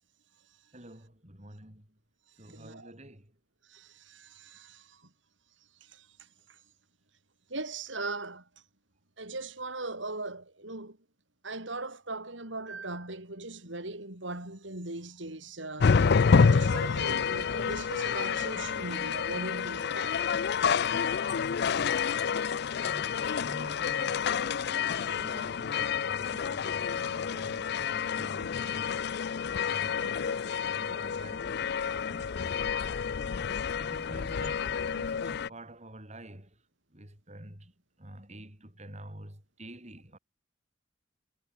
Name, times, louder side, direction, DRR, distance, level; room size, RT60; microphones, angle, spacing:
voice 1, 0.7-2.0 2.3-3.3 22.7-29.0 29.6-32.4 33.1-33.4 33.7-36.6 36.9-40.2, right 1 dB, 35° right, 6.6 m, -48 dB
voice 2, 2.5-2.9 3.7-5.0 5.8-6.6 7.5-8.4 9.2-11.0 11.4-20.3, right 2 dB, 75° right, 6.3 m, -39 dB
sound 1, 15.8-35.5, left 6 dB, 60° left, 0.4 m, -29 dB
Wind instrument woodwind instrument, 25.1-33.5, left 1 dB, 40° left, 7.2 m, -51 dB
head